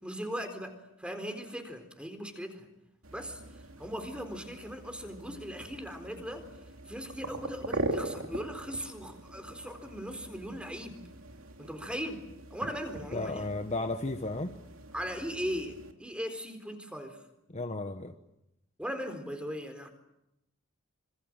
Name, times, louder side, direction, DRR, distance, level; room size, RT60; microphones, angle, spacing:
voice 1, 0.0-2.7 3.1-3.4 3.8-6.4 6.9-11.0 11.6-12.2 12.5-13.5 14.9-17.2 18.8-19.9, equal, 5° right, 7 dB, 4.1 m, -38 dB
sound 1, 3.0-15.9, right 2 dB, 70° right, 2.8 m, -42 dB
voice 2, 13.1-14.5 17.5-18.1, left 2 dB, 30° left, 6 dB, 1.3 m, -34 dB
26.5 x 26.0 x 7.6 m, 0.87 s
head